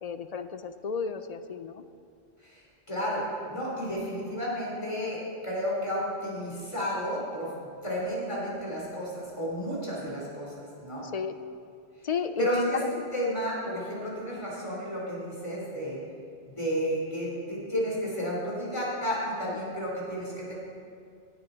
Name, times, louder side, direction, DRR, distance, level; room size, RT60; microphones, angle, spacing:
voice 1, 0.0-1.8 11.0-11.3 12.0-12.9 19.5-19.6, left 5 dB, 50° left, 10 dB, 0.5 m, -32 dB
voice 2, 2.9-3.2 3.5-5.2 5.4-7.5 7.8-10.5 10.8-11.1 12.4-16.0 16.5-20.5, equal, 30° left, -5 dB, 3.4 m, -32 dB
16.5 x 11.0 x 4.0 m, 2.4 s
omnidirectional pair, 1.1 m